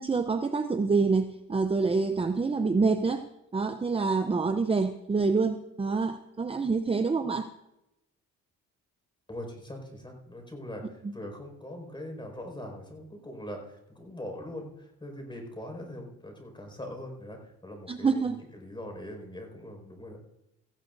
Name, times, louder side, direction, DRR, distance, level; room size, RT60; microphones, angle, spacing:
voice 1, 0.0-7.5 11.0-11.1 17.9-18.4, right 4 dB, 20° right, 7 dB, 0.7 m, -27 dB
voice 2, 9.3-20.2, left 1 dB, 15° left, 2 dB, 5.4 m, -42 dB
18.0 x 15.0 x 2.7 m, 0.87 s
cardioid pair, 90°, 30 cm